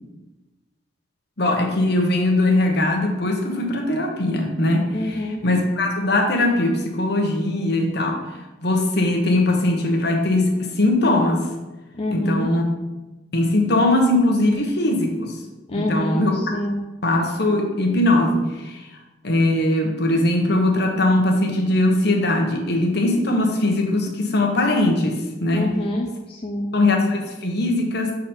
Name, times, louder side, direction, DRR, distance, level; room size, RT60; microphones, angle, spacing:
voice 1, 1.4-4.9 5.4-8.2 8.6-11.5 12.1-12.6 13.3-15.4 15.7-16.4 17.0-18.8 19.2-25.7 26.7-28.1, left 1 dB, 60° left, 2 dB, 1.1 m, -20 dB
voice 2, 4.9-5.4 11.9-12.5 15.7-16.8 25.5-26.7, left 1 dB, 30° left, 0 dB, 0.5 m, -26 dB
6.7 x 4.0 x 4.3 m, 1.1 s
head